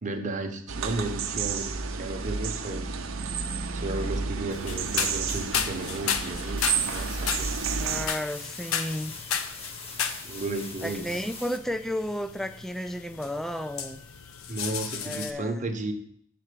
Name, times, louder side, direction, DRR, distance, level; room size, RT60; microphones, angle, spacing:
voice 1, 0.0-2.9 3.7-6.6 6.9-7.5 10.2-11.1 14.5-15.9, right 2 dB, 40° right, 5 dB, 0.8 m, -34 dB
sound 1, 0.7-8.1, right 5 dB, 75° right, 0.6 m, -31 dB
sound 2, 4.5-15.3, left 7 dB, 90° left, 0.6 m, -34 dB
sound 3, 6.6-11.6, left 3 dB, 30° left, 1.0 m, -42 dB
voice 2, 7.8-9.2 10.8-14.0 15.0-15.6, equal, ahead, 10 dB, 0.3 m, -33 dB
7.2 x 4.3 x 6.7 m, 0.68 s
head